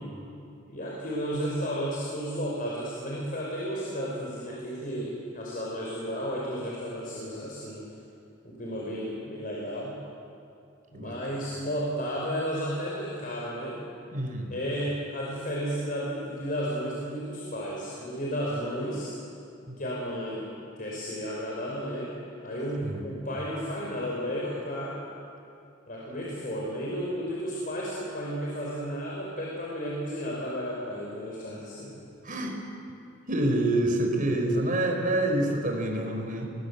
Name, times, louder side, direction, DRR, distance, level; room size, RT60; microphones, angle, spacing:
voice 1, 0.7-7.8 8.4-9.9 10.9-13.8 14.5-19.1 19.8-20.5 20.8-22.1 22.4-25.0 25.9-31.9, equal, 45° left, -3 dB, 5.2 m, -33 dB
voice 2, 14.1-14.5 19.7-19.8 22.8-23.0 32.2-32.5 33.3-36.5, right 1 dB, 45° right, 3 dB, 4.9 m, -27 dB
30.0 x 23.0 x 8.4 m, 2.6 s
head